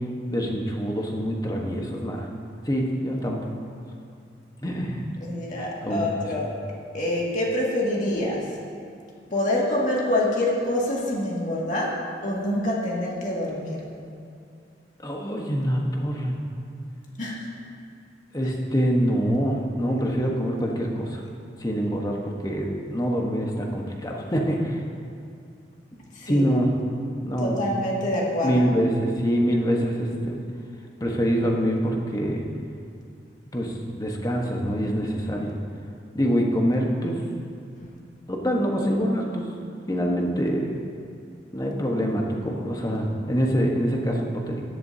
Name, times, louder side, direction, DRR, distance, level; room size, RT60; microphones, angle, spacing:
voice 1, 0.3-2.3 2.6-3.4 4.6-5.0 5.6-6.3 15.0-16.4 18.3-21.2 21.6-22.2 22.4-24.8 26.2-26.7 27.2-27.6 28.4-30.4 31.0-32.4 33.5-35.6 36.1-37.2 37.8-37.9 38.3-39.5 39.9-40.8 41.5-44.6, equal, 20° left, 0 dB, 1.2 m, -25 dB
voice 2, 5.2-6.5 6.9-8.5 9.3-13.8 17.2-17.5 26.1-26.5 27.4-28.6, left 1 dB, 45° left, -4 dB, 2.2 m, -26 dB
16.0 x 11.0 x 2.8 m, 2.5 s
head